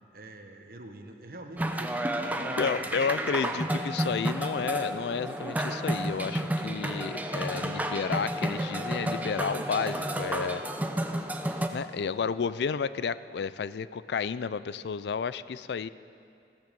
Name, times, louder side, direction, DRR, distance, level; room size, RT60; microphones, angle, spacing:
voice 1, 0.1-3.8, right 1 dB, 55° right, 4 dB, 1.2 m, -46 dB
sound 1, 1.6-11.7, right 1 dB, 10° right, 0.6 m, -31 dB
voice 2, 2.6-10.6 11.7-15.9, left 6 dB, 70° left, 16 dB, 0.4 m, -31 dB
15.5 x 13.5 x 5.3 m, 2.5 s
head